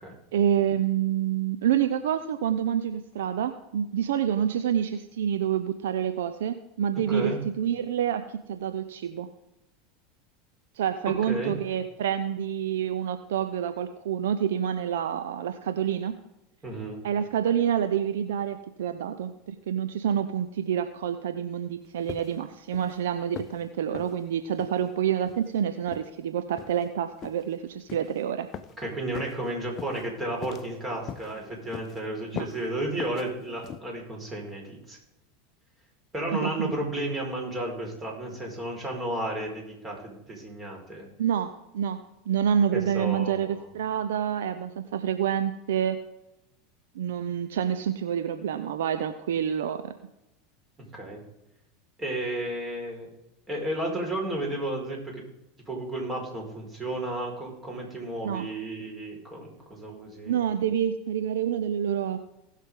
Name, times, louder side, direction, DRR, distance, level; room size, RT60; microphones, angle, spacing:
voice 1, 0.3-9.3 10.8-16.1 17.0-28.5 32.3-32.5 36.3-36.7 41.2-42.0 42.3-46.0 46.9-49.9 58.2-58.5 60.3-62.3, right 9 dB, 70° right, 9 dB, 0.7 m, -28 dB
voice 2, 7.1-7.4 11.3-11.5 16.6-17.0 28.8-35.0 36.1-41.1 42.7-43.6 50.9-51.2 52.0-53.1 53.5-55.0 55.7-60.4, right 1 dB, 20° right, 0 dB, 4.8 m, -33 dB
sound 1, 22.1-22.5 22.7-23.0 23.4-23.6 23.9-24.1 24.6-24.8 25.3-25.5 25.9-26.1 26.6-26.9 27.2-27.4 27.9-28.1 28.5-28.8 29.1-29.4 29.8-30.0 30.4-30.8 31.1-31.3 31.7-32.0 32.4-32.6 33.0-33.3 33.6-33.8, left 9 dB, 40° left, 0.7 m, -40 dB
19.5 x 6.5 x 3.7 m, 0.89 s
hypercardioid pair, 85°, 0 cm